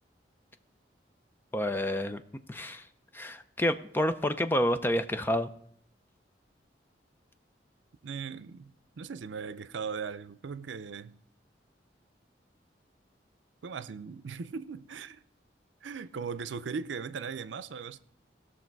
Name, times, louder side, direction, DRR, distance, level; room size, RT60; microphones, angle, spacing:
voice 1, 1.5-2.2 2.5-2.9 3.1-5.5, left 1 dB, 10° left, 0.5 m, -29 dB
voice 2, 8.0-11.2 13.6-15.2 15.8-18.0, right 5 dB, 90° right, 0.5 m, -38 dB
17.0 x 6.3 x 4.6 m
head